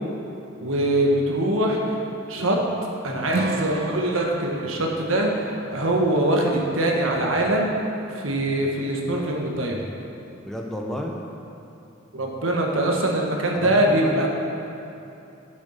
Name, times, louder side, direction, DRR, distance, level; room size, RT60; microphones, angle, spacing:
voice 1, 0.6-1.8 2.3-2.6 3.0-5.3 5.7-7.7 8.1-9.8 12.1-14.3, right 1 dB, 85° right, 0 dB, 1.4 m, -23 dB
Acoustic guitar / Strum, 3.3-6.6, right 2 dB, 50° right, 0.4 m, -33 dB
voice 2, 10.4-11.2 13.5-14.3, equal, ahead, 0 dB, 0.8 m, -31 dB
8.8 x 7.2 x 5.6 m, 2.8 s
head